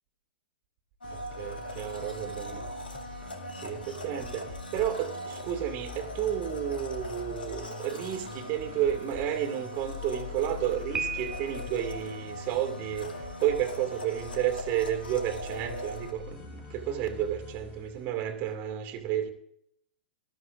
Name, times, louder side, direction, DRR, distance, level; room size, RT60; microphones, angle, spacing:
Domestic sounds home sounds, 1.0-16.1, equal, 75° left, 2.3 m, -41 dB
sound 1, 1.0-18.5, left 5 dB, 35° left, 5.8 m, -44 dB
voice 1, 1.1-2.7 3.6-19.3, right 10 dB, 35° right, 2.3 m, -32 dB
Piano, 10.9-11.9, right 6 dB, 15° right, 0.8 m, -35 dB
20.0 x 13.5 x 2.6 m
figure-of-eight pair, 105°, 5 cm